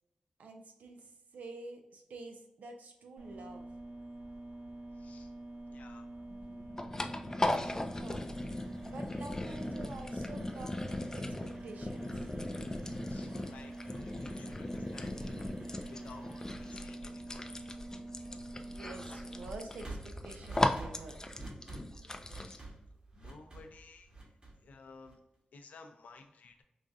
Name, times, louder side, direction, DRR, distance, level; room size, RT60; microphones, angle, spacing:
voice 1, 0.4-3.7 7.9-8.2 8.8-12.3 18.7-21.2, right 3 dB, 80° right, 4 dB, 0.6 m, -48 dB
sound 1, 3.2-19.4, right 2 dB, 55° right, 1.0 m, -46 dB
voice 2, 5.0-5.3 5.7-6.1 13.0-17.6 22.3-22.7 23.2-24.3 24.6-25.2 25.5-26.6, left 3 dB, 80° left, 6 dB, 0.5 m, -55 dB
sound 2, 6.3-22.6, left 1 dB, 20° left, 0.4 m, -38 dB
sound 3, 7.4-25.4, right 2 dB, 40° right, 1.3 m, -53 dB
4.9 x 2.3 x 2.6 m, 0.90 s
cardioid pair, 70°, 3 cm